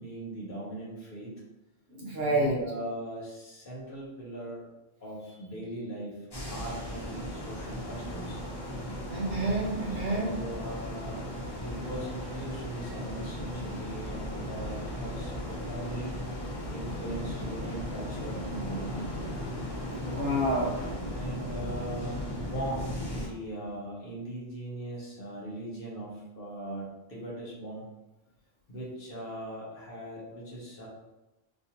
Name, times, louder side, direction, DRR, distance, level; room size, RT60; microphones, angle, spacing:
voice 1, 0.0-1.3 2.2-4.7 5.0-6.2 6.5-8.4 9.9-11.3 11.6-16.2 16.7-19.3 21.0-27.9 28.7-30.9, right 1 dB, 50° left, -5 dB, 1.1 m, -40 dB
voice 2, 2.0-2.6 9.1-10.3 20.1-20.8, right 1 dB, 55° right, -5 dB, 1.0 m, -28 dB
sound 1, 6.3-23.3, equal, 30° left, 0.5 m, -36 dB
3.6 x 2.6 x 2.7 m, 0.99 s
omnidirectional pair, 1.3 m